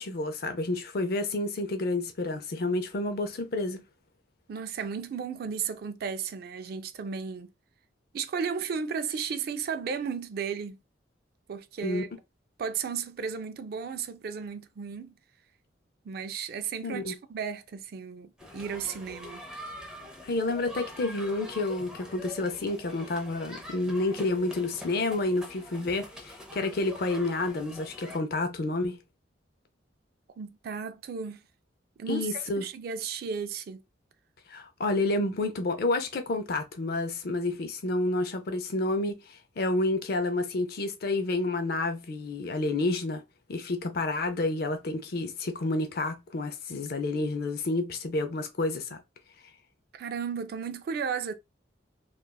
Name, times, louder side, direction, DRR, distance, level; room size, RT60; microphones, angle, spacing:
voice 1, 0.0-3.8 11.8-12.0 16.8-17.1 20.2-29.0 32.1-32.6 34.5-39.2 39.6-43.2 43.5-49.0, left 2 dB, 55° left, 0.5 m, -29 dB
voice 2, 4.5-7.5 8.1-10.8 11.5-12.1 12.6-15.1 16.0-19.4 30.4-31.4 32.0-33.8 49.9-51.3, right 6 dB, 55° right, 0.3 m, -34 dB
sound 1, 18.4-28.2, left 1 dB, 5° right, 0.6 m, -44 dB
3.3 x 2.3 x 2.2 m
head